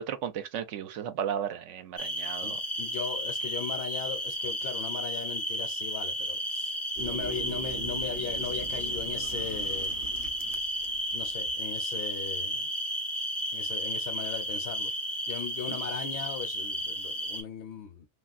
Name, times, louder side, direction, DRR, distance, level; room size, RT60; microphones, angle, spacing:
voice 1, 0.0-2.6 15.7-15.8, right 9 dB, 85° right, 0.9 m, -34 dB
sound 1, 2.0-17.4, equal, 25° left, 0.3 m, -33 dB
voice 2, 2.4-10.0 11.1-12.7 13.5-14.9 15.3-18.1, left 8 dB, 60° left, 0.8 m, -38 dB
sound 2, 7.0-11.5 11.8-11.9, right 7 dB, 60° right, 0.6 m, -42 dB
3.2 x 2.4 x 2.4 m
omnidirectional pair, 1.2 m